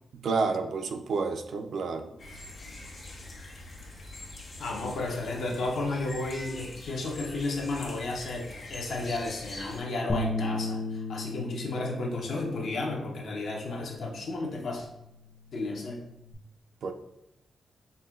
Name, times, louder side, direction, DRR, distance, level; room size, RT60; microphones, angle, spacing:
voice 1, 0.1-2.1 16.8-16.9, right 4 dB, 70° right, 6 dB, 0.3 m, -30 dB
sound 1, 2.2-9.8, left 2 dB, 50° left, 1.1 m, -44 dB
voice 2, 4.6-14.9 15.5-16.1, left 2 dB, 75° left, 0 dB, 0.7 m, -33 dB
sound 2, 10.1-16.3, left 2 dB, 20° left, 0.5 m, -37 dB
5.3 x 2.2 x 2.2 m, 0.82 s
cardioid pair, 90°, 0 cm